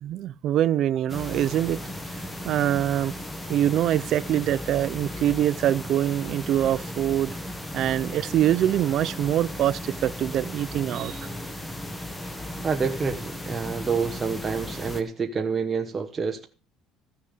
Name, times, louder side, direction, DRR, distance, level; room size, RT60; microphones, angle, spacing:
voice 1, 0.0-1.8 2.4-3.1 3.5-7.3 7.7-11.3, right 11 dB, 50° right, 0.5 m, -24 dB
sound 1, 1.1-15.0, left 1 dB, 10° left, 1.3 m, -36 dB
voice 2, 12.6-16.5, right 5 dB, 20° right, 1.0 m, -28 dB
14.5 x 6.8 x 6.7 m
cardioid pair, 155°, 0 cm